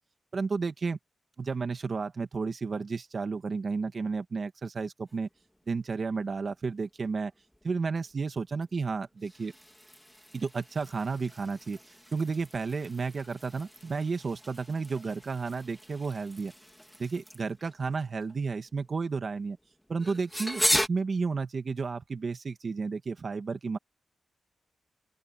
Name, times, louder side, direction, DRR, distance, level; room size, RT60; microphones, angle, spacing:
voice 1, 0.3-1.0 1.4-5.3 5.7-7.3 7.6-9.5 10.3-11.8 12.1-16.5 17.0-19.6 19.9-23.8, right 4 dB, 45° right, 1.8 m, -32 dB
sound 1, 5.1-20.9, equal, ahead, 2.0 m, -38 dB
open air
wide cardioid pair, 150°, 0 cm